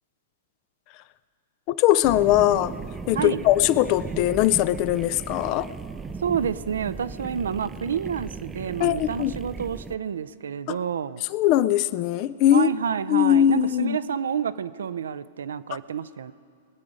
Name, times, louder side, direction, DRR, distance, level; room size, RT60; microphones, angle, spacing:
voice 1, 1.7-2.7 3.1-5.7 8.8-9.3 10.7-10.8 11.3-12.7 13.1-14.0, left 12 dB, 45° left, 16 dB, 0.4 m, -21 dB
sound 1, 2.0-10.0, right 5 dB, 15° right, 0.5 m, -37 dB
voice 2, 6.2-11.2 12.5-16.3, right 7 dB, 70° right, 15 dB, 0.4 m, -29 dB
22.5 x 8.6 x 5.0 m, 2.2 s
figure-of-eight pair, 105°, 0 cm